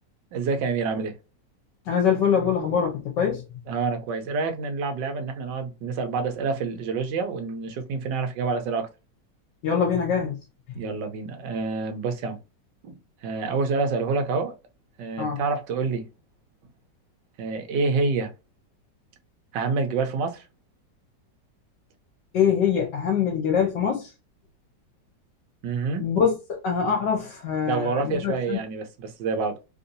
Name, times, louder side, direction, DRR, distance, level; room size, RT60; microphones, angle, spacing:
voice 1, 0.3-1.2 3.7-8.9 10.7-12.4 12.8-14.6 15.0-16.1 17.4-18.3 19.5-20.5 25.6-26.1 27.7-29.6, right 4 dB, 80° right, 1.4 m, -27 dB
voice 2, 1.9-3.4 9.6-10.4 15.2-15.4 22.3-24.1 26.0-28.6, left 7 dB, 75° left, 1.4 m, -24 dB
3.5 x 2.6 x 2.6 m
omnidirectional pair, 1.9 m